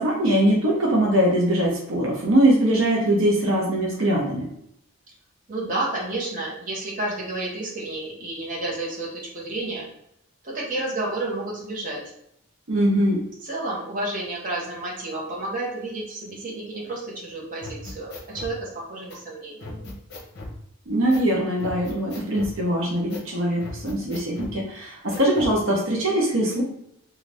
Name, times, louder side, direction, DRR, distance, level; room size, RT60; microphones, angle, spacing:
voice 1, 0.0-4.5 12.7-13.2 20.9-26.6, right 1 dB, 70° right, -2 dB, 0.7 m, -22 dB
voice 2, 5.5-9.9 10.4-12.0 13.4-19.9, right 2 dB, 40° right, -4 dB, 0.9 m, -31 dB
sound 1, 17.6-18.5 19.1-19.2 19.6-20.6 21.1-21.3 21.6-22.6 23.1-23.3 23.6-24.6 25.1-25.6, left 2 dB, 50° left, 0.7 m, -37 dB
2.6 x 2.4 x 3.2 m, 0.76 s
head